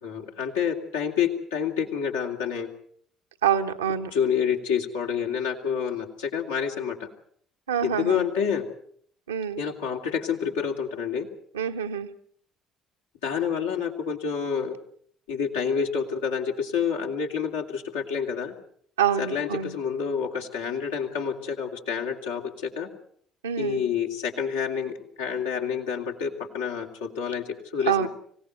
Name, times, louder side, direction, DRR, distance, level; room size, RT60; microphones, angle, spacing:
voice 1, 0.0-2.7 4.1-7.1 7.8-8.6 9.6-11.3 13.2-14.8 15.3-18.5 19.2-22.9 23.6-27.4 27.7-28.1, left 7 dB, 75° left, 0 dB, 2.8 m, -28 dB
voice 2, 3.4-4.1 7.7-8.3 9.3-9.6 11.5-12.1 19.0-19.7 23.4-23.8 27.8-28.1, right 8 dB, 80° right, 6 dB, 1.1 m, -26 dB
25.5 x 17.5 x 8.0 m, 0.62 s
figure-of-eight pair, 50°, 0 cm